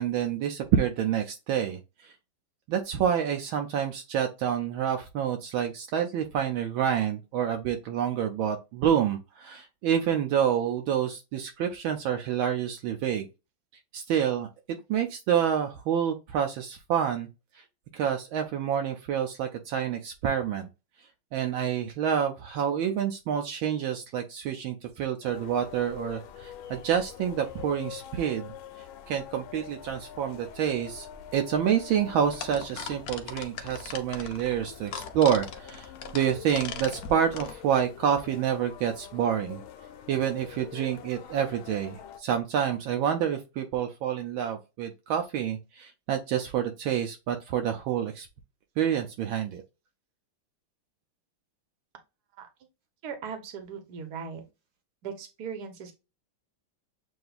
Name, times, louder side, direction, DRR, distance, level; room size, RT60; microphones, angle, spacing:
voice 1, 0.0-2.1 2.7-13.3 13.9-17.3 17.5-17.6 17.9-20.7 21.3-28.5 29.1-31.1 31.3-39.6 40.1-48.3 48.8-49.6, right 9 dB, 75° right, 1.4 m, -28 dB
sound 1, 25.2-42.2, left 9 dB, 80° left, 1.5 m, -45 dB
sound 2, 32.2-37.5, left 6 dB, 65° left, 1.0 m, -39 dB
voice 2, 53.0-54.4 55.0-55.9, right 6 dB, 55° right, 1.4 m, -38 dB
7.8 x 2.7 x 2.4 m
omnidirectional pair, 2.3 m